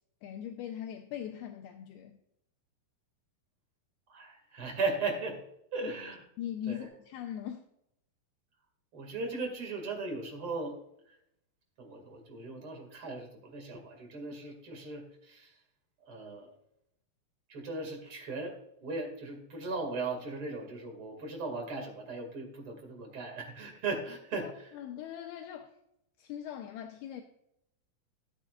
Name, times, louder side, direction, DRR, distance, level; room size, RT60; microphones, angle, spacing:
voice 1, 0.2-2.2 5.8-5.9 6.4-7.6 24.4-25.7 26.2-27.2, left 10 dB, 80° left, 2.4 m, -40 dB
voice 2, 4.1-5.4 5.7-6.2 6.7-6.9 8.9-10.8 11.8-15.5 16.1-16.5 17.5-18.6 18.8-24.7, right 3 dB, 40° right, 2.6 m, -37 dB
14.5 x 8.6 x 2.4 m
omnidirectional pair, 4.7 m